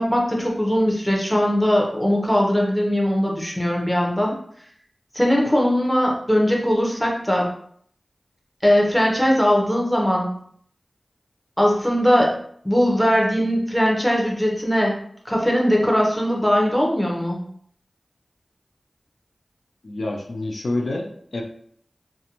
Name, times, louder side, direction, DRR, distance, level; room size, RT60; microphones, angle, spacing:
voice 1, 0.0-4.4 5.1-7.5 8.6-10.3 11.6-12.4 12.6-15.0 15.2-17.4, equal, 5° left, -2 dB, 0.8 m, -20 dB
voice 2, 19.8-21.4, left 2 dB, 75° left, 1 dB, 0.3 m, -27 dB
2.5 x 2.2 x 2.8 m, 0.63 s
wide cardioid pair, 45°, 0 cm